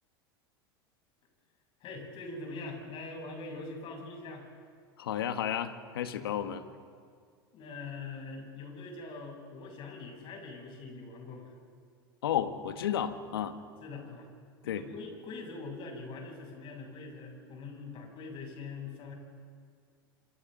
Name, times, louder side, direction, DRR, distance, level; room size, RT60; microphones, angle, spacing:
voice 1, 1.8-4.5 6.2-6.3 7.5-11.5 13.8-14.3 14.6-19.1, left 3 dB, 45° left, 0 dB, 7.6 m, -43 dB
voice 2, 5.0-6.6 12.2-13.6 14.7-14.8, left 10 dB, 80° left, 9 dB, 1.5 m, -32 dB
28.5 x 27.0 x 4.0 m, 2.1 s
hypercardioid pair, 90°, 12 cm